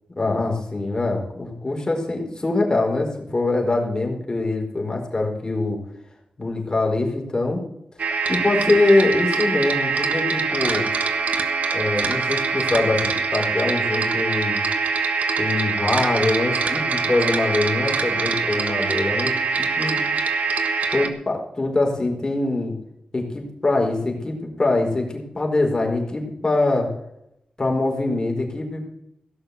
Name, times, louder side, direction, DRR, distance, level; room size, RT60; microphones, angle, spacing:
voice 1, 0.2-5.8 6.4-7.6 8.3-10.9 11.7-14.6 15.4-20.0 20.9-22.7 23.1-26.9 27.6-28.9, left 2 dB, 30° left, 0 dB, 4.5 m, -23 dB
sound 1, 8.0-21.1, right 4 dB, 80° right, 1.4 m, -24 dB
16.5 x 6.7 x 8.1 m, 0.80 s
wide cardioid pair, 90°, 2 cm